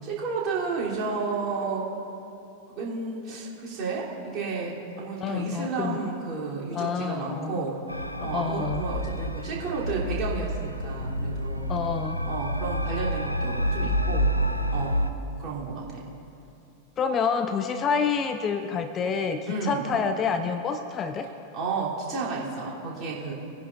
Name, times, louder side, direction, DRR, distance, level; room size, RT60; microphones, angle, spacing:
voice 1, 0.0-1.8 2.7-7.8 8.2-11.7 12.2-14.3 14.7-15.0 15.4-16.0 19.5-19.9 21.5-23.3, right 4 dB, 30° right, -6 dB, 3.2 m, -32 dB
voice 2, 5.2-6.0 6.7-7.6 8.2-8.8 11.7-12.2 17.0-21.3, left 6 dB, 25° left, 8 dB, 0.5 m, -28 dB
sound 1, 7.9-15.1, equal, 85° left, 0.5 m, -28 dB
21.0 x 10.5 x 2.5 m, 2.7 s
figure-of-eight pair, 90°, 0 cm